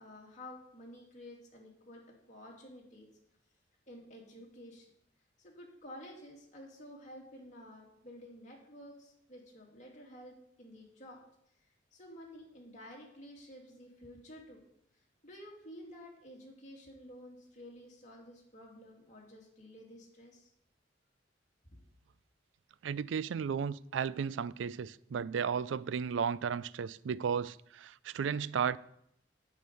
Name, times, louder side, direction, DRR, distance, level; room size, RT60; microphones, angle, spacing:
voice 1, 0.0-3.1 3.9-4.9 5.4-11.2 11.9-14.6 15.2-20.5, left 1 dB, 40° left, 2.7 m, -51 dB
voice 2, 22.8-28.8, right 7 dB, 90° right, 0.4 m, -34 dB
9.5 x 5.3 x 7.6 m
head